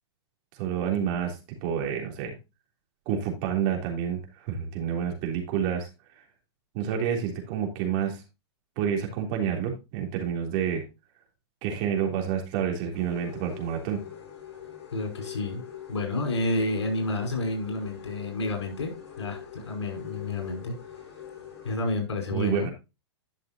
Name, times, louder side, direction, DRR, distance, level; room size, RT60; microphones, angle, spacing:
voice 1, 0.5-2.3 3.0-5.9 6.2-6.3 6.7-8.2 8.7-10.8 11.6-14.0 22.3-22.7, right 8 dB, 45° right, 2 dB, 3.4 m, -29 dB
sound 1, 12.9-21.8, left 9 dB, 65° left, 4.9 m, -44 dB
voice 2, 14.9-15.6 15.9-20.7 21.6-22.7, left 2 dB, 90° left, 2 dB, 5.2 m, -30 dB
11.5 x 6.6 x 2.8 m, 0.26 s
hypercardioid pair, 135°, 14 cm